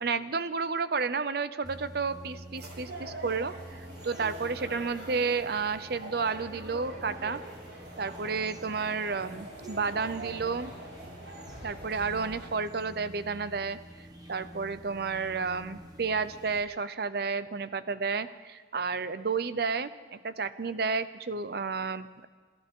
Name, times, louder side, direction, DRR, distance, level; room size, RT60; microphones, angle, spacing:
voice 1, 0.0-7.4 8.0-10.7 11.6-13.8 14.3-22.3, right 4 dB, 60° right, 13 dB, 0.6 m, -31 dB
sound 1, 1.6-16.6, right 1 dB, 20° right, 1.2 m, -49 dB
sound 2, 2.5-12.5, right 1 dB, 80° right, 6.7 m, -44 dB
27.5 x 13.0 x 3.7 m, 1.4 s
head